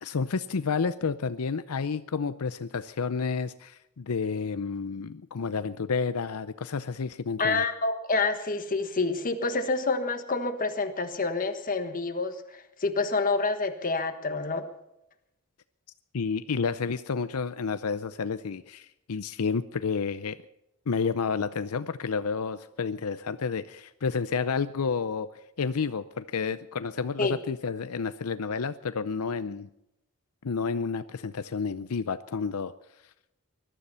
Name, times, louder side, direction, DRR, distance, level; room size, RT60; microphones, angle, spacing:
voice 1, 0.0-7.6 16.1-20.4 20.9-29.7 30.4-32.7, left 5 dB, 80° left, 12 dB, 0.6 m, -30 dB
voice 2, 7.4-12.4 12.8-14.7 27.2-27.4, left 3 dB, 40° left, 8 dB, 1.4 m, -27 dB
20.5 x 12.5 x 5.6 m, 0.84 s
head